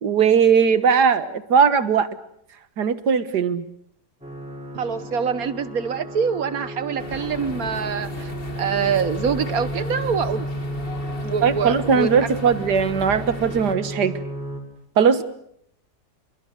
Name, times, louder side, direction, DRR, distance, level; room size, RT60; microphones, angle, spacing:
voice 1, 0.0-2.1 2.8-3.6 11.4-14.1 15.0-15.2, right 6 dB, 85° right, 12 dB, 1.9 m, -19 dB
sound 1, 4.2-14.6, equal, 5° right, 5.9 m, -33 dB
voice 2, 4.7-10.5 11.2-12.1 12.4-12.5, right 6 dB, 60° right, 13 dB, 1.7 m, -25 dB
sound 2, 7.0-13.8, left 3 dB, 35° left, 2.4 m, -37 dB
28.0 x 22.5 x 6.7 m, 0.70 s
omnidirectional pair, 1.7 m